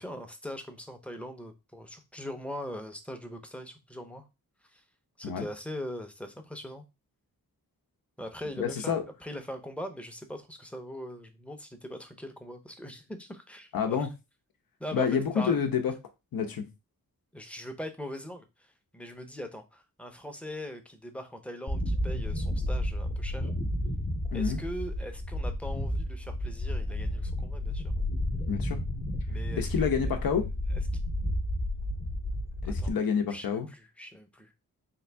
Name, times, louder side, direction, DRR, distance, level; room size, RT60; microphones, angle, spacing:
voice 1, 0.0-4.3 4.6-4.8 5.2-6.8 8.2-14.1 14.8-15.1 15.3-15.6 17.3-23.5 24.3-27.9 29.3-29.9 32.8-32.9 33.3-34.5, equal, 5° left, 0.6 m, -41 dB
voice 2, 8.6-9.0 13.7-14.1 14.9-15.9 16.3-16.6 24.3-24.6 28.5-28.8 29.6-30.5 32.6-33.7, left 6 dB, 70° left, 0.8 m, -28 dB
sound 1, 21.7-32.9, left 1 dB, 35° left, 0.9 m, -31 dB
3.8 x 2.7 x 3.3 m
wide cardioid pair, 100°, 36 cm